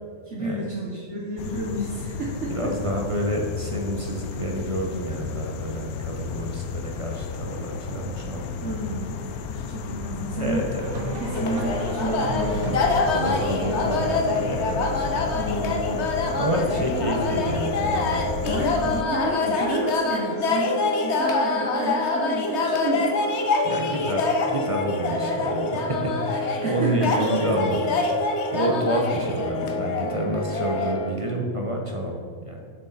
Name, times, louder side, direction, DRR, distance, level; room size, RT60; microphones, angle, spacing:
voice 1, 0.3-2.7 8.6-10.6 11.1-12.9 15.3-16.2 17.0-17.1 18.4-23.2 26.6-27.1 27.4-27.5, right 2 dB, 55° right, -4 dB, 1.2 m, -31 dB
sound 1, 1.4-19.0, left 6 dB, 80° left, 1.1 m, -33 dB
voice 2, 2.5-8.9 10.3-11.2 13.1-15.4 16.4-19.0 23.6-28.0 28.5-32.6, right 1 dB, 30° right, 0 dB, 0.6 m, -29 dB
sound 2, 10.8-15.9, right 1 dB, 70° right, 1.6 m, -35 dB
sound 3, 11.3-31.1, left 3 dB, 55° left, 0.9 m, -25 dB
7.4 x 6.2 x 4.1 m, 2.3 s
omnidirectional pair, 1.5 m